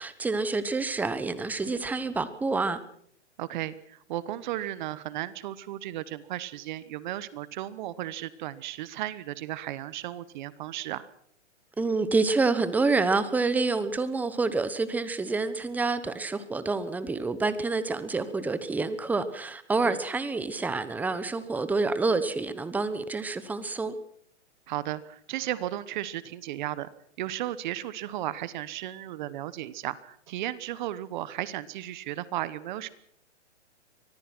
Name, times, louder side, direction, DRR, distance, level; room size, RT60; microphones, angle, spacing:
voice 1, 0.0-2.8 11.8-23.9, right 3 dB, 5° right, 13 dB, 1.0 m, -28 dB
voice 2, 3.4-11.1 19.8-20.0 24.7-26.9 27.2-32.9, right 13 dB, 40° right, 17 dB, 1.2 m, -35 dB
24.5 x 18.5 x 6.1 m, 0.65 s
hypercardioid pair, 145°, 36 cm